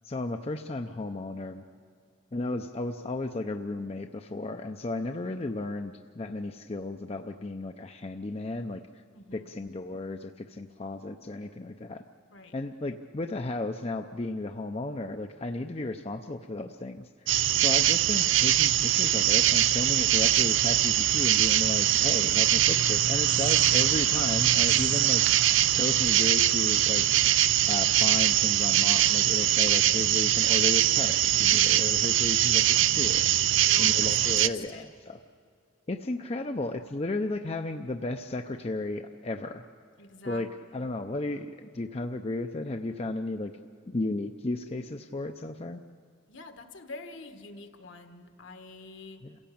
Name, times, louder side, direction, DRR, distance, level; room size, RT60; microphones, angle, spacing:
voice 1, 0.0-1.6 2.3-9.0 9.3-12.0 12.5-17.3 17.6-25.4 25.8-27.1 27.7-33.3 33.8-35.2 35.9-39.6 40.2-43.5 43.9-45.8 49.2-49.4, left 2 dB, 30° left, 6 dB, 0.5 m, -34 dB
voice 2, 9.1-9.5 12.3-12.5 33.5-34.4 34.7-34.9 40.0-40.9 46.3-49.2, left 2 dB, 70° left, 7 dB, 1.5 m, -46 dB
sound 1, 17.3-34.5, right 12 dB, 75° right, 0.5 m, -23 dB
28.0 x 16.0 x 8.6 m, 2.2 s
head